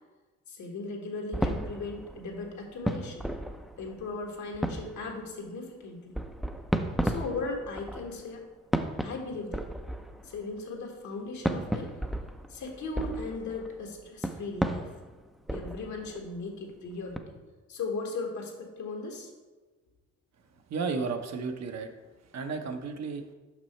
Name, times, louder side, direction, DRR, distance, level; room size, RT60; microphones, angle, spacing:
voice 1, 0.5-3.3 3.8-6.2 7.0-8.4 9.0-9.6 10.2-11.9 12.5-14.9 15.5-17.4 17.7-19.3, left 3 dB, 70° left, 1 dB, 1.5 m, -37 dB
sound 1, 1.3-4.3 4.5-5.3 6.1-8.4 8.7-10.6 11.4-16.5 17.1-17.2, right 1 dB, ahead, 0.4 m, -34 dB
voice 2, 20.7-21.9 22.3-23.2, right 4 dB, 60° right, 6 dB, 0.8 m, -33 dB
6.0 x 5.5 x 4.3 m, 1.2 s
cardioid pair, 90°, 30 cm